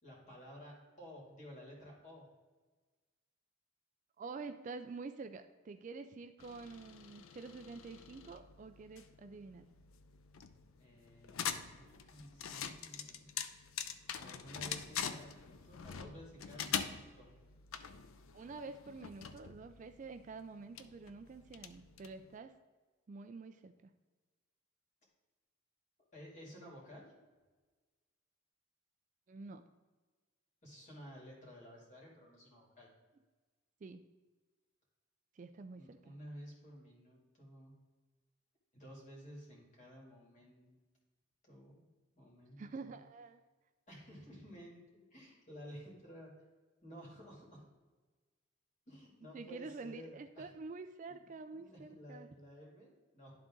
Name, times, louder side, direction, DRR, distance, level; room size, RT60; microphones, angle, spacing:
voice 1, 0.0-2.3 10.8-13.3 14.1-17.3 26.1-27.1 30.6-32.9 35.7-37.7 38.7-40.8 41.4-41.9 42.1-43.0 43.9-46.3 46.8-47.6 48.9-50.4 51.1-53.3, equal, 35° left, -3 dB, 2.4 m, -53 dB
voice 2, 4.2-9.7 18.3-22.5 23.1-23.9 29.3-29.6 33.8-34.0 35.4-36.1 42.6-43.4 49.3-52.3, right 4 dB, 40° right, 8 dB, 0.3 m, -48 dB
sound 1, 6.4-22.4, left 8 dB, 85° left, 0.5 m, -45 dB
11.5 x 3.8 x 3.7 m, 1.3 s
head